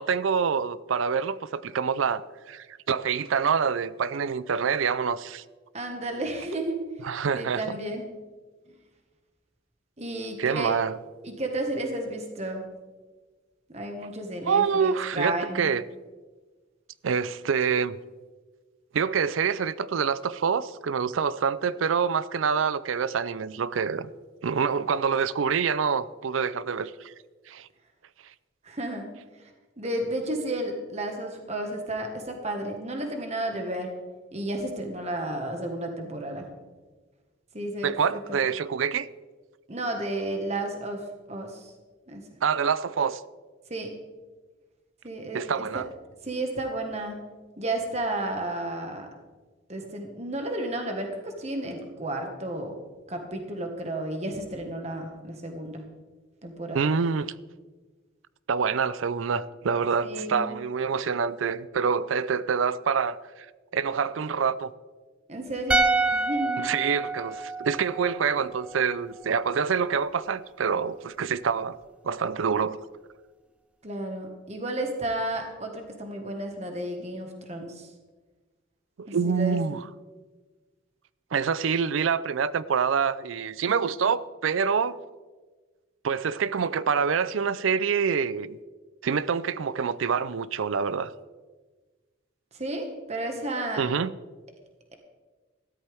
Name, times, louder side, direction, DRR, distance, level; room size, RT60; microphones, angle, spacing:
voice 1, 0.0-5.4 7.0-7.8 10.4-11.0 14.5-15.8 17.0-17.9 18.9-24.1 24.4-27.1 27.5-27.7 37.8-39.1 42.4-43.2 45.3-45.9 56.7-57.3 58.5-63.5 63.7-64.7 66.6-71.8 72.0-72.8 79.0-79.8 81.3-85.0 86.0-88.6 89.0-91.1 93.8-94.1, right 6 dB, 85° right, 0.5 m, -26 dB
voice 2, 5.7-6.8 7.3-8.0 10.0-10.7 11.2-12.6 13.7-15.7 28.6-29.1 29.8-33.9 34.3-36.5 37.5-38.4 39.7-41.0 41.3-41.7 42.1-42.2 43.7-43.9 45.0-45.8 46.2-47.2 47.6-49.1 49.7-52.8 53.1-55.8 56.4-56.9 60.0-60.5 65.3-66.7 73.8-77.9 79.1-79.6 92.5-93.8, right 1 dB, 35° right, 1.5 m, -32 dB
sound 1, 65.7-68.9 69.2-69.3, right 3 dB, 5° right, 0.3 m, -27 dB
14.0 x 12.5 x 3.5 m
head